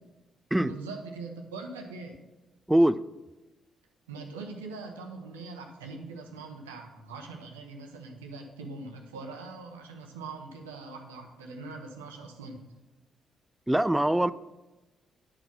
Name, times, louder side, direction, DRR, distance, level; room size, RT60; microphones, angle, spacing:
voice 1, 0.6-2.2 4.1-12.6, right 3 dB, 85° right, 3 dB, 1.0 m, -42 dB
voice 2, 2.7-3.0 13.7-14.3, right 1 dB, 10° right, 16 dB, 0.4 m, -23 dB
10.0 x 4.8 x 5.9 m, 1.1 s
hypercardioid pair, 40°, 0 cm